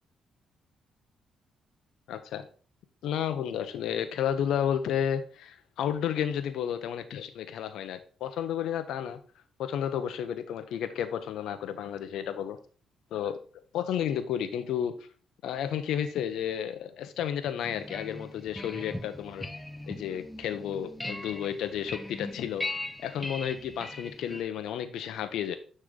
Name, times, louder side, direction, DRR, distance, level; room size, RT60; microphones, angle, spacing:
voice 1, 2.1-2.5 3.0-9.2 9.6-12.6 13.1-13.4 13.7-14.9 15.4-19.5 19.9-22.6 23.0-25.6, left 9 dB, 80° left, 10 dB, 0.8 m, -32 dB
sound 1, 17.6-24.4, left 2 dB, 10° left, 0.6 m, -39 dB
9.7 x 3.3 x 3.8 m, 0.40 s
cardioid pair, 90°, 0 cm